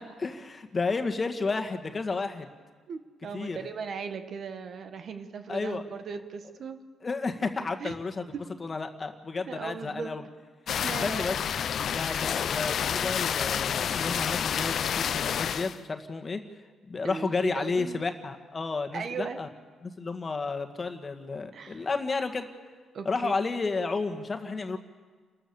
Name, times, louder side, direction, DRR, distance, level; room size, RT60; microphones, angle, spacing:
voice 1, 0.0-2.5 3.3-3.6 5.5-5.8 7.0-8.2 8.6-10.2 10.7-11.4 11.9-16.4 16.9-19.5 19.8-22.5 23.1-24.8, left 4 dB, 30° left, 6 dB, 1.8 m, -32 dB
voice 2, 2.9-6.8 7.8-7.9 8.3-8.4 9.5-10.2 10.7-11.3 11.9-12.0 17.0-18.0 18.9-19.4 21.5-21.9 22.9-23.3, right 5 dB, 55° right, 8 dB, 1.5 m, -38 dB
sound 1, 10.7-15.8, left 8 dB, 60° left, 0.7 m, -29 dB
28.5 x 13.5 x 7.1 m, 1.5 s
cardioid pair, 90°, 0 cm